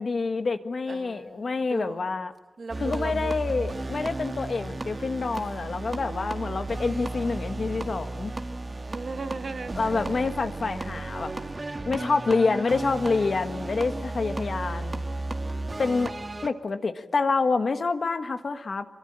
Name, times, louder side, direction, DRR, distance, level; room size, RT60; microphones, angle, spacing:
voice 1, 0.0-2.3 2.8-8.3 9.7-11.3 11.8-15.0 15.8-16.1 16.4-18.8, left 4 dB, 70° left, 8 dB, 1.5 m, -27 dB
voice 2, 0.9-2.0 2.6-3.6 6.3-6.7 8.8-10.2 15.0-15.8, right 4 dB, 70° right, 8 dB, 1.6 m, -39 dB
sound 1, 2.7-16.5, right 2 dB, 40° right, 1.8 m, -34 dB
25.5 x 23.5 x 8.9 m, 1.1 s
wide cardioid pair, 90°, 0 cm